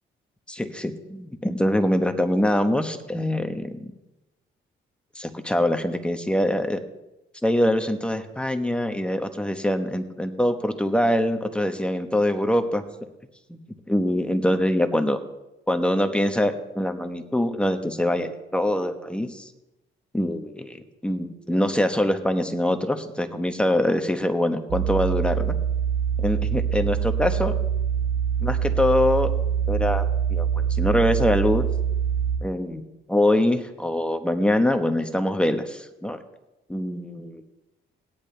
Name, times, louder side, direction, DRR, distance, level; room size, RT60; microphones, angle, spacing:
voice 1, 0.5-3.9 5.1-6.8 7.4-12.8 13.5-13.6 13.9-15.2 15.7-19.5 20.1-25.5 26.2-27.5 28.4-29.3 29.7-31.7 32.4-32.8 33.1-36.2 36.7-37.4, left 1 dB, 5° left, 7 dB, 1.2 m, -24 dB
sound 1, 24.7-32.4, right 8 dB, 75° right, 0.9 m, -24 dB
17.0 x 10.5 x 3.4 m, 0.96 s
cardioid pair, 90°, 20 cm